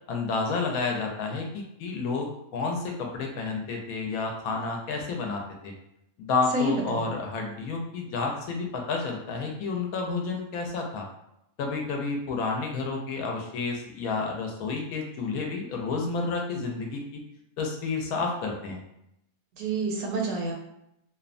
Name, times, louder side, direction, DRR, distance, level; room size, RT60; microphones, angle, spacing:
voice 1, 0.1-5.7 6.2-11.0 11.6-17.2 17.6-18.8, left 4 dB, 75° left, 1 dB, 1.0 m, -30 dB
voice 2, 6.5-7.1 19.5-20.5, right 2 dB, 80° right, 1 dB, 1.1 m, -28 dB
2.9 x 2.1 x 2.5 m, 0.81 s
omnidirectional pair, 1.5 m